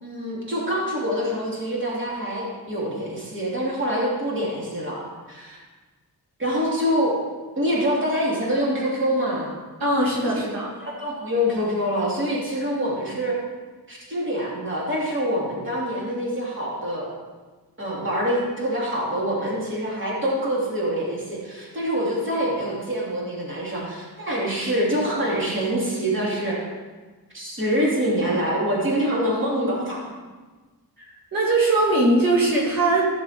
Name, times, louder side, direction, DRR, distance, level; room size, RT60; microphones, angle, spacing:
voice 1, 0.0-5.6 6.4-7.2 7.6-9.6 10.8-13.4 13.9-17.1 17.8-26.6 27.3-30.1, equal, 30° right, -5 dB, 3.0 m, -25 dB
voice 2, 9.8-10.7 31.0-33.1, right 2 dB, 65° right, -5 dB, 2.6 m, -21 dB
15.5 x 6.7 x 4.6 m, 1.3 s
wide cardioid pair, 170°, 38 cm